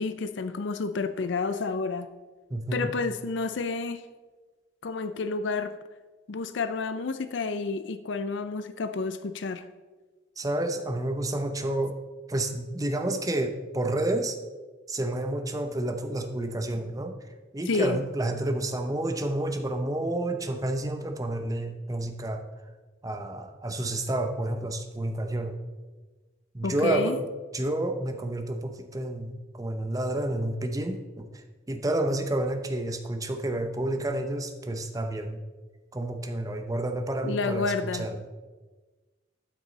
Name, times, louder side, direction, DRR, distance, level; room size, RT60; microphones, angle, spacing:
voice 1, 0.0-2.1 2.7-4.0 4.8-5.8 6.3-9.7 17.7-18.0 26.6-27.2 37.2-38.1, left 4 dB, 70° left, 10 dB, 0.5 m, -30 dB
voice 2, 2.5-2.9 10.4-12.0 12.3-14.4 14.9-17.1 17.5-22.4 23.0-25.6 26.5-27.1 27.5-35.4 35.9-38.3, right 1 dB, 20° right, 6 dB, 0.7 m, -30 dB
12.0 x 6.2 x 4.0 m, 1.3 s
head